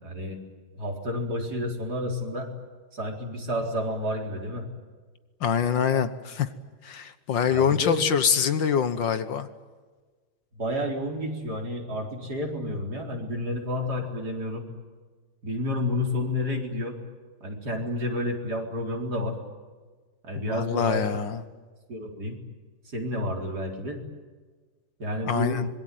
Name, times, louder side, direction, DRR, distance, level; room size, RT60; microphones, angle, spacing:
voice 1, 0.0-0.4 0.8-2.5 2.9-4.7 7.5-8.0 10.6-14.6 15.4-17.0 17.4-19.4 20.2-21.2 21.9-22.4 22.9-24.0 25.0-25.6, left 1 dB, 50° right, 1 dB, 4.8 m, -30 dB
voice 2, 5.4-6.5 6.8-9.5 20.4-21.4 25.2-25.7, left 7 dB, 65° left, 11 dB, 1.8 m, -25 dB
25.5 x 22.0 x 9.4 m, 1.4 s
omnidirectional pair, 2.2 m